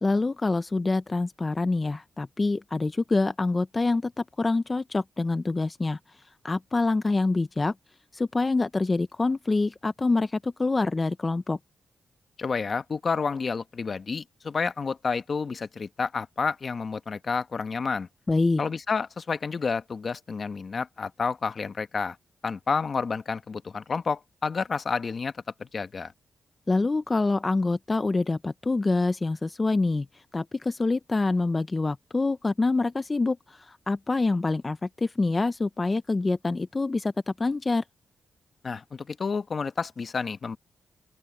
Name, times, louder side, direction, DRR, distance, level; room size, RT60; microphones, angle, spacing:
voice 1, 0.0-4.1 4.4-6.0 6.4-7.7 8.1-11.6 18.3-18.6 26.7-37.1 37.4-37.8, left 3 dB, 30° left, 0.5 m, -26 dB
voice 2, 12.4-18.1 18.6-22.2 22.4-25.3 25.6-26.1 38.6-40.6, left 5 dB, 50° left, 1.1 m, -30 dB
open air
cardioid pair, 90°, 0 cm